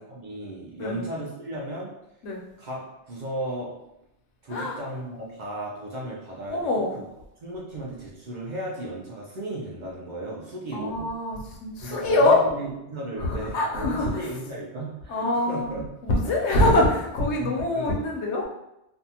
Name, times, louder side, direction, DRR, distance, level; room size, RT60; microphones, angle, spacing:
voice 1, 0.0-1.9 2.6-2.8 3.1-3.7 4.4-6.9 7.4-11.1 11.8-15.9 16.6-16.7 17.4-18.0, right 1 dB, 50° right, -4 dB, 0.6 m, -35 dB
voice 2, 4.5-4.8 6.5-6.9 10.7-12.4 13.2-14.3 15.1-15.8 16.0-18.5, left 2 dB, 85° left, -1 dB, 0.9 m, -24 dB
2.6 x 2.3 x 2.8 m, 0.85 s
omnidirectional pair, 1.2 m